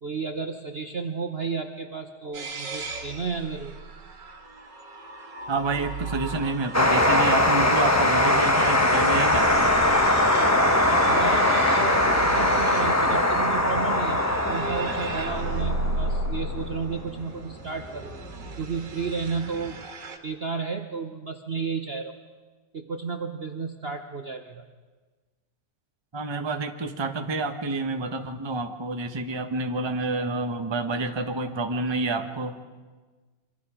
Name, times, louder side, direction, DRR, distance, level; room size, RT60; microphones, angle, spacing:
voice 1, 0.0-3.8 10.7-18.2 18.6-19.8 20.2-22.1 22.7-24.7, right 5 dB, 40° right, 5 dB, 1.1 m, -32 dB
sound 1, 2.3-20.2, right 2 dB, 75° right, 2.5 m, -36 dB
voice 2, 5.5-9.7 26.1-32.6, right 3 dB, 20° right, 6 dB, 1.0 m, -28 dB
sound 2, 6.7-19.7, left 1 dB, 10° left, 1.1 m, -22 dB
27.0 x 25.0 x 5.0 m, 1.3 s
omnidirectional pair, 1.9 m